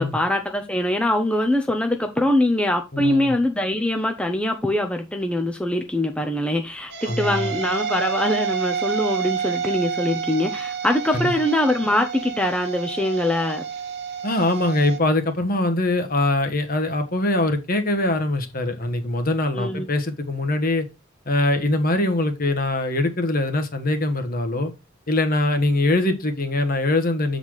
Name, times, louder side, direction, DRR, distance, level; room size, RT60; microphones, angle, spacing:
voice 1, 0.0-13.6 19.6-19.9, left 1 dB, 5° left, 0.7 m, -23 dB
voice 2, 2.9-3.3 7.1-7.5 11.1-11.3 14.2-20.9 21.3-24.7 25.1-27.4, left 2 dB, 45° left, 1.2 m, -22 dB
sound 1, 6.9-15.0, right 7 dB, 55° right, 1.0 m, -29 dB
7.9 x 4.1 x 4.7 m
head